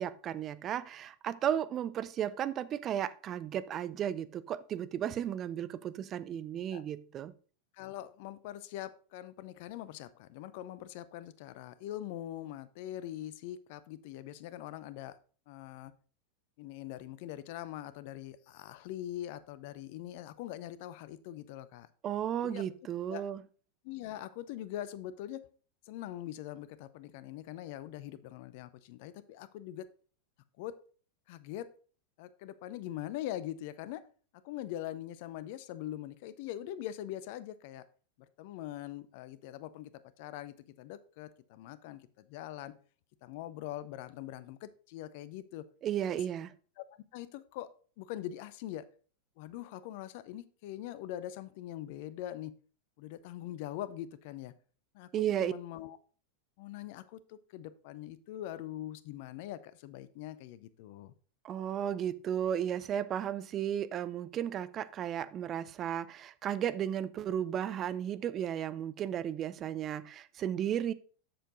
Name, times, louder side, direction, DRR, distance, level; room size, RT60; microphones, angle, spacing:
voice 1, 0.0-7.3 22.0-23.4 45.8-46.5 55.1-55.5 61.4-70.9, right 10 dB, 35° right, 0.5 m, -34 dB
voice 2, 7.7-15.2 15.5-15.9 16.6-21.9 22.4-22.6 23.1-23.2 23.8-25.4 25.9-29.9 30.6-30.7 31.3-31.7 32.2-34.0 34.4-37.8 38.2-39.9 40.2-42.7 43.2-45.6 46.1-46.2 46.8-46.9 47.1-47.7 48.0-48.8 49.4-52.5 53.0-54.5 54.9-56.0 56.6-61.1, left 13 dB, 55° left, 0.6 m, -42 dB
7.7 x 6.7 x 3.8 m
figure-of-eight pair, 95°, 0 cm